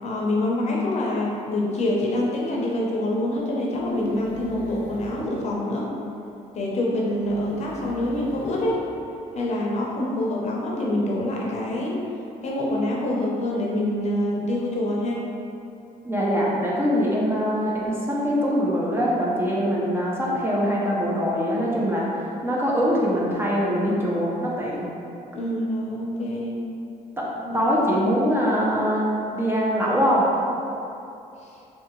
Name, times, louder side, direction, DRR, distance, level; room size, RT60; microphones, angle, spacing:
voice 1, 0.0-5.9 6.5-8.8 9.3-12.0 12.4-15.2 25.3-26.6 27.4-27.7 31.4-31.5, left 1 dB, 45° left, -3 dB, 0.6 m, -26 dB
sound 1, 3.3-5.3 7.2-8.9 9.2-9.3, left 1 dB, 10° left, 0.9 m, -45 dB
voice 2, 16.0-24.9 27.2-27.3 27.5-30.3, equal, 15° right, -5 dB, 0.6 m, -23 dB
3.3 x 2.8 x 3.0 m, 2.7 s
cardioid pair, 110°, 16 cm